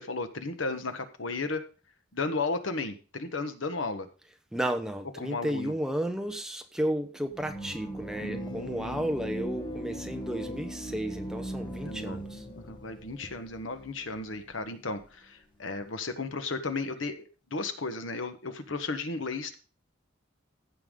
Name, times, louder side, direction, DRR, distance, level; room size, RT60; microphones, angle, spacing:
voice 1, 0.0-1.6 2.1-4.1 5.2-5.7 8.2-9.1 11.8-12.2 12.6-19.6, left 3 dB, 70° left, 1.2 m, -34 dB
voice 2, 4.5-12.4, right 1 dB, 5° right, 0.9 m, -33 dB
sound 1, 7.3-14.5, equal, 25° left, 1.5 m, -39 dB
15.0 x 6.8 x 3.8 m
head